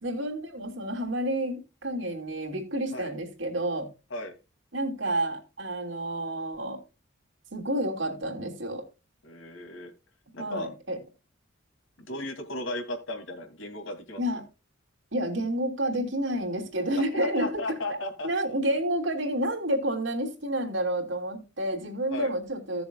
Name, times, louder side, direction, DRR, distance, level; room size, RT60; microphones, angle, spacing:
voice 1, 0.0-3.9 4.7-6.8 7.5-8.8 10.4-11.0 14.2-14.4 15.1-17.8 18.2-22.8, right 1 dB, 75° right, 2.9 m, -30 dB
voice 2, 9.2-9.9 10.3-10.7 12.1-14.2 17.0-18.3 18.7-18.8 22.1-22.3, left 1 dB, 85° left, 2.5 m, -35 dB
16.0 x 6.9 x 2.3 m
head